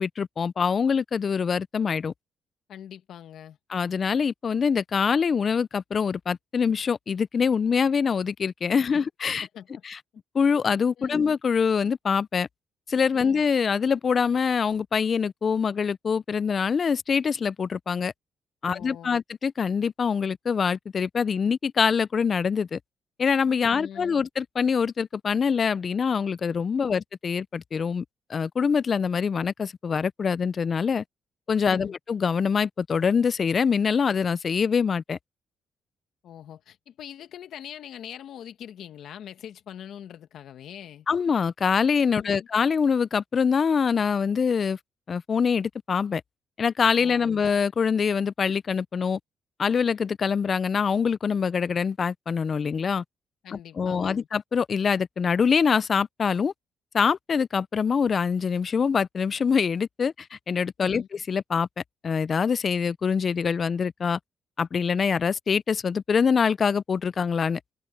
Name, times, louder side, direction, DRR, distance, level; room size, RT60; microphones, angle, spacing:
voice 1, 0.0-2.1 3.7-9.5 9.9-10.0 10.3-12.5 12.9-18.1 18.6-22.8 23.2-28.0 28.3-31.0 31.5-35.2 41.1-44.8 45.1-46.2 46.6-49.2 49.6-53.0 53.8-56.5 56.9-61.7 62.0-64.2 64.6-67.6, left 6 dB, 45° left, 0.4 m, -24 dB
voice 2, 2.7-3.6 8.8-8.9 9.2-9.8 11.0-11.3 13.1-13.4 18.6-19.2 23.6-24.2 26.8-27.0 31.6-31.9 36.2-41.1 42.1-42.5 46.9-47.4 53.4-54.3 60.8-61.1, left 10 dB, 70° left, 1.7 m, -43 dB
cardioid pair, 90°, 0 cm